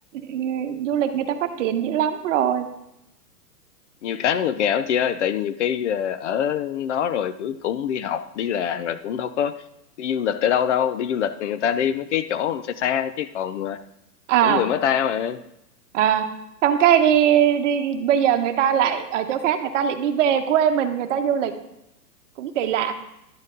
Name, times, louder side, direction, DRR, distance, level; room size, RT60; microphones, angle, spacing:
voice 1, 0.2-2.7 14.3-14.6 15.9-16.3 16.6-21.5 22.4-22.9, right 9 dB, 50° right, 8 dB, 1.1 m, -21 dB
voice 2, 4.0-9.5 10.0-13.8 14.4-15.4, left 9 dB, 50° left, 13 dB, 0.5 m, -24 dB
11.5 x 7.3 x 3.7 m, 0.84 s
hypercardioid pair, 120°, 49 cm